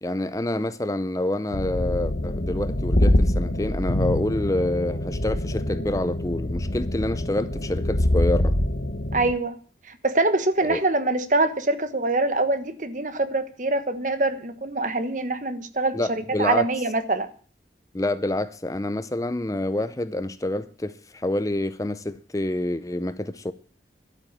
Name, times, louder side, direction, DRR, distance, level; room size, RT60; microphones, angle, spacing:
voice 1, 0.0-8.6 10.7-10.8 15.9-16.7 17.9-23.5, left 1 dB, 20° left, 0.6 m, -27 dB
sound 1, 1.5-9.3, left 1 dB, 60° left, 1.2 m, -25 dB
voice 2, 9.1-9.6 9.9-17.3, right 2 dB, 45° right, 1.3 m, -24 dB
12.0 x 8.8 x 8.7 m
head